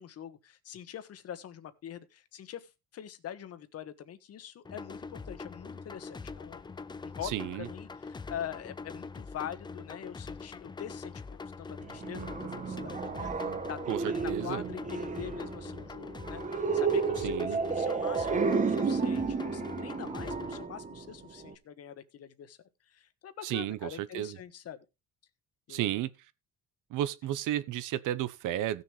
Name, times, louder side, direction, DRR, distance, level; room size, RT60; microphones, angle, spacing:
voice 1, 0.0-6.6 7.0-22.6 22.8-24.8 25.7-26.0, left 9 dB, 50° left, 1.4 m, -44 dB
sound 1, 4.6-20.6, left 4 dB, 15° left, 0.5 m, -43 dB
voice 2, 7.2-7.7 13.9-14.6 17.2-17.6 23.4-24.4 25.7-26.1 26.9-28.8, right 13 dB, 70° right, 0.9 m, -33 dB
sound 2, 11.8-21.5, right 5 dB, 25° right, 1.1 m, -32 dB
16.5 x 6.7 x 3.3 m
cardioid pair, 125°, 32 cm